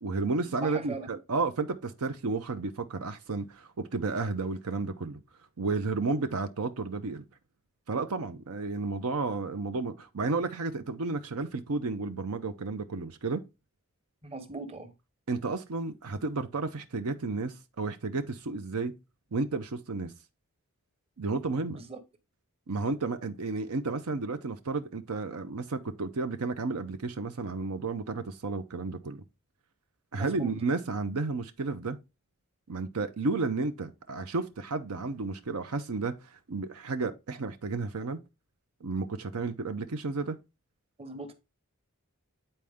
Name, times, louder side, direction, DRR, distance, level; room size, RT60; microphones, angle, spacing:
voice 1, 0.0-5.2 5.6-7.2 7.9-13.4 15.3-18.9 19.3-20.1 21.2-21.8 22.7-29.2 30.1-32.0 32.7-38.2 38.8-40.4, right 3 dB, 75° right, 0.7 m, -32 dB
voice 2, 0.6-1.1 14.2-14.9 21.8-22.0 30.1-30.6 41.0-41.3, right 3 dB, 25° right, 1.0 m, -39 dB
9.0 x 4.3 x 3.6 m
head